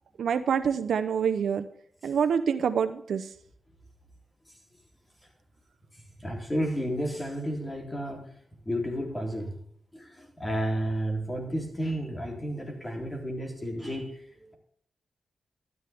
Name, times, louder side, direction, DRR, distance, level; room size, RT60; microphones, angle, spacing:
voice 1, 0.2-1.7 2.0-3.3, right 7 dB, 85° right, 9 dB, 0.7 m, -26 dB
voice 2, 6.2-8.3 8.6-9.6 9.9-14.5, equal, 20° left, 1 dB, 3.3 m, -32 dB
12.0 x 10.5 x 3.5 m, 0.62 s
cardioid pair, 90°, 0 cm